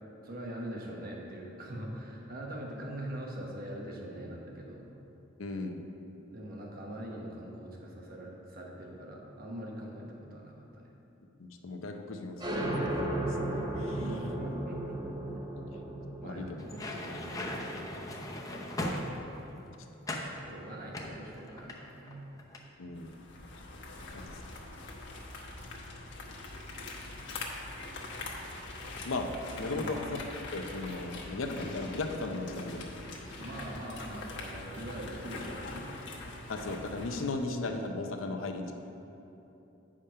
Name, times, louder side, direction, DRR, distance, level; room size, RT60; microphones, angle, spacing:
voice 1, 0.2-4.8 6.3-10.9 13.9-15.0 16.2-17.8 20.4-22.2 29.7-29.9 33.3-35.8, right 1 dB, 50° right, -1 dB, 1.2 m, -42 dB
voice 2, 5.4-5.8 11.4-13.3 13.8-14.0 16.2-16.7 22.8-23.2 24.1-24.4 29.0-29.3 29.5-30.2 30.5-32.9 36.5-38.7, left 3 dB, 90° left, 5 dB, 0.7 m, -36 dB
sound 1, 12.4-19.7, right 1 dB, 20° right, 0.7 m, -36 dB
sound 2, 16.6-19.5 20.0-20.3 20.9-22.1 22.4-22.7, left 1 dB, 15° left, 0.7 m, -38 dB
sound 3, 23.0-37.3, left 2 dB, 60° left, 1.1 m, -43 dB
8.8 x 5.1 x 5.6 m, 2.9 s
head